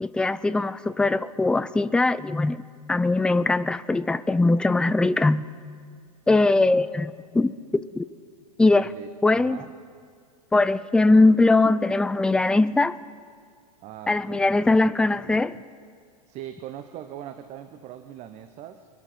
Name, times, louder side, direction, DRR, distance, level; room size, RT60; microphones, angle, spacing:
voice 1, 0.0-2.6 2.9-5.5 6.3-8.0 8.6-8.9 9.2-9.6 10.5-12.9 14.1-15.6, left 2 dB, 5° left, 15 dB, 0.4 m, -21 dB
voice 2, 8.8-9.7 13.8-14.6 16.3-18.9, right 10 dB, 35° right, 10 dB, 0.9 m, -41 dB
25.5 x 10.5 x 4.9 m, 2.1 s
figure-of-eight pair, 95°, 19 cm